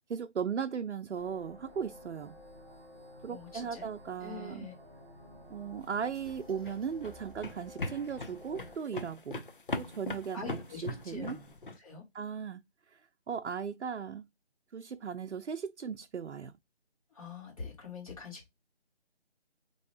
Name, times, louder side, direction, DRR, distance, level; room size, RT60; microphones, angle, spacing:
voice 1, 0.1-2.4 3.2-4.7 5.5-9.4 9.7-10.6 10.8-11.4 12.1-12.6 12.9-13.0 13.3-14.3 14.7-16.5, right 7 dB, 80° right, 0.6 m, -37 dB
sound 1, 1.1-8.7, left 1 dB, 5° right, 1.0 m, -52 dB
voice 2, 3.3-3.9 4.2-4.7 10.3-12.0 17.1-18.5, left 4 dB, 30° left, 2.3 m, -45 dB
sound 2, 6.1-11.8, left 2 dB, 50° left, 0.7 m, -40 dB
5.6 x 3.1 x 2.5 m
figure-of-eight pair, 170°, 34 cm